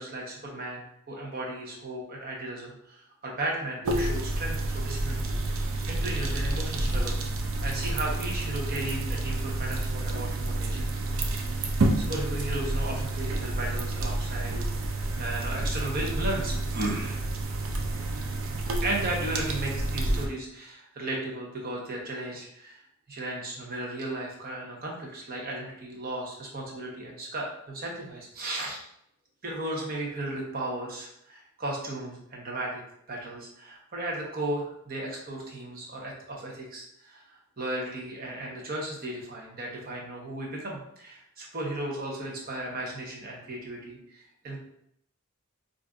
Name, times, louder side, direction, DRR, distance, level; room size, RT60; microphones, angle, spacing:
voice 1, 0.0-7.2 7.6-10.9 11.6-14.5 15.0-17.2 18.8-22.8 23.1-28.8 29.4-32.8 33.1-44.6, right 1 dB, 45° right, -1 dB, 0.9 m, -35 dB
sound 1, 3.8-20.3, right 2 dB, 80° right, 0.5 m, -29 dB
4.8 x 2.6 x 2.4 m, 0.74 s
head